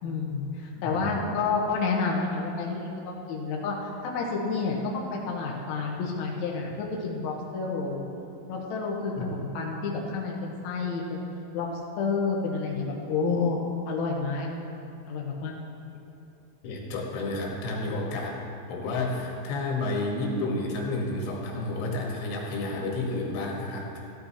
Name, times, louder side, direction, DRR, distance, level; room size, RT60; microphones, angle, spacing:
voice 1, 0.0-8.0 8.5-11.2 11.5-11.7 12.0-13.6 13.9-14.5 15.1-15.5, left 4 dB, 60° left, -2 dB, 2.0 m, -29 dB
voice 2, 0.8-1.3 9.2-9.3 16.6-18.4 18.7-24.1, left 2 dB, 85° left, -1 dB, 4.2 m, -31 dB
14.5 x 11.0 x 4.3 m, 2.8 s
omnidirectional pair, 5.4 m